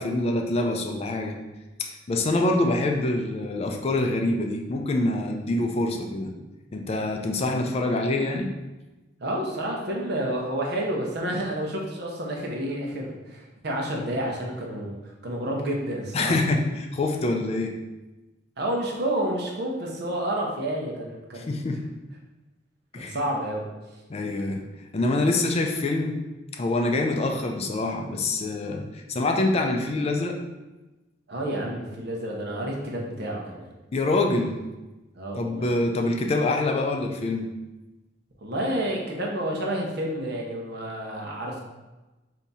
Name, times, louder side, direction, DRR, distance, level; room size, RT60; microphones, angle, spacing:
voice 1, 0.0-1.4 1.8-6.3 6.7-8.5 16.1-17.8 21.3-21.8 22.9-23.2 24.1-24.6 24.9-26.2 26.5-30.4 33.9-34.6 35.4-37.5, left 2 dB, 35° left, 3 dB, 0.4 m, -25 dB
voice 2, 9.2-16.3 18.6-21.5 22.9-23.6 31.3-33.7 35.1-35.7 38.4-41.6, right 1 dB, 60° right, -1 dB, 0.8 m, -30 dB
3.5 x 2.7 x 4.1 m, 1.1 s
head